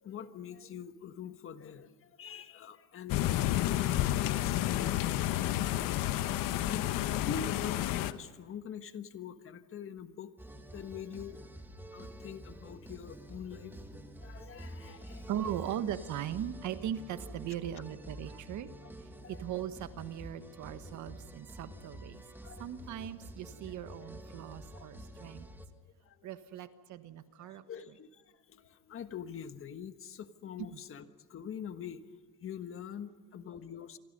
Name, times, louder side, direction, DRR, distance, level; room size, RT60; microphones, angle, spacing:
voice 1, 0.0-10.3 10.7-11.4 11.9-13.8 14.2-15.3 18.8-18.9 19.2-19.4 22.4-22.8 23.7-24.1 24.7-24.8 26.0-26.3 27.4-32.0 32.4-34.0, left 8 dB, 40° left, 10 dB, 1.4 m, -44 dB
sound 1, 3.1-8.1, left 14 dB, 75° left, 1.1 m, -30 dB
sound 2, 10.4-25.7, right 1 dB, 5° right, 2.0 m, -48 dB
voice 2, 15.3-18.7 19.3-22.2 22.6-25.5 26.2-27.6, right 10 dB, 60° right, 11 dB, 1.5 m, -39 dB
28.0 x 23.5 x 5.4 m, 1.5 s
cardioid pair, 140°, 33 cm